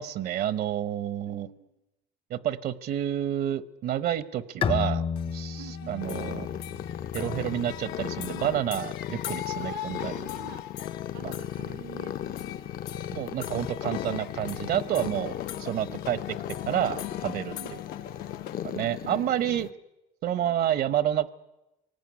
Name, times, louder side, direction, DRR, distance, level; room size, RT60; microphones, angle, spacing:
voice 1, 0.0-1.5 2.3-6.5 7.1-10.1 13.1-16.2 16.7-17.8 18.6-19.7 20.2-21.3, right 11 dB, 65° right, 16 dB, 1.0 m, -29 dB
voice 2, 1.3-1.8 5.6-6.1 9.6-10.7 11.1-12.5 15.6-16.2 17.5-17.8 19.0-19.3, right 13 dB, 90° right, 13 dB, 1.2 m, -47 dB
Bowed string instrument, 4.6-8.1, left 6 dB, 35° left, 0.8 m, -32 dB
sound 1, 5.2-18.5, left 12 dB, 90° left, 1.4 m, -41 dB
sound 2, 6.0-19.7, left 11 dB, 60° left, 0.9 m, -37 dB
27.0 x 18.5 x 9.6 m, 0.99 s
cardioid pair, 110°, 17 cm